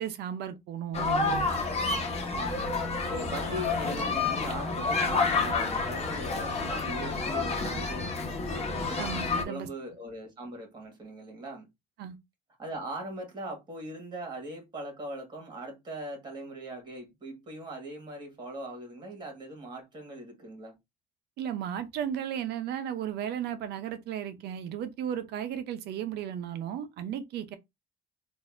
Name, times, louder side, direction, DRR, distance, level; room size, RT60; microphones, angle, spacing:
voice 1, 0.0-1.5 9.0-9.7 12.0-12.2 21.4-27.6, right 9 dB, 75° right, 0.7 m, -35 dB
sound 1, 0.9-9.4, left 4 dB, 40° left, 1.2 m, -29 dB
voice 2, 2.3-2.7 3.1-8.1 8.4-9.1 9.4-11.7 12.6-20.8, right 1 dB, 25° right, 1.8 m, -40 dB
4.1 x 2.7 x 2.6 m
cardioid pair, 110°, 17 cm